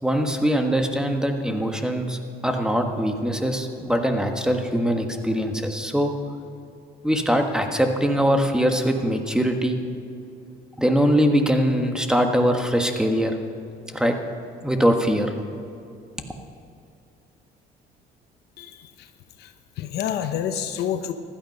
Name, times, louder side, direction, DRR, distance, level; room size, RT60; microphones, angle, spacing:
voice 1, 0.0-6.1 7.0-9.8 10.8-13.4 13.9-14.2 14.6-15.3, equal, 5° right, 4 dB, 1.4 m, -22 dB
voice 2, 18.6-19.1 19.4-21.1, left 9 dB, 75° left, 8 dB, 0.9 m, -29 dB
15.5 x 12.0 x 5.4 m, 2.6 s
cardioid pair, 110°, 17 cm